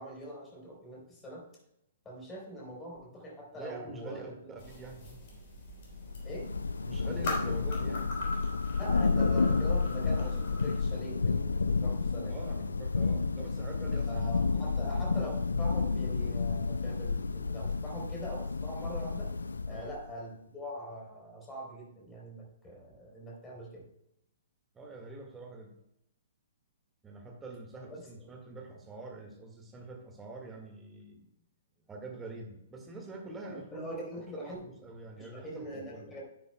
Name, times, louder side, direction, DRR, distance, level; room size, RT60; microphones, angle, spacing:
voice 1, 0.0-1.4 2.1-4.3 6.2-6.5 8.8-12.4 14.1-19.3 19.7-23.8 33.5-34.6 35.2-36.2, equal, 15° left, -2 dB, 3.6 m, -43 dB
voice 2, 3.5-5.2 6.9-8.2 12.3-14.2 14.6-15.0 19.7-19.9 24.7-25.7 27.0-31.3 31.9-33.8 34.3-36.1, right 3 dB, 15° right, 2 dB, 1.8 m, -46 dB
sound 1, 4.6-10.7, left 2 dB, 45° left, 3.7 m, -41 dB
Thunder / Rain, 6.0-20.1, left 4 dB, 70° left, 0.4 m, -31 dB
10.5 x 9.6 x 2.2 m, 0.80 s
figure-of-eight pair, 115°, 0 cm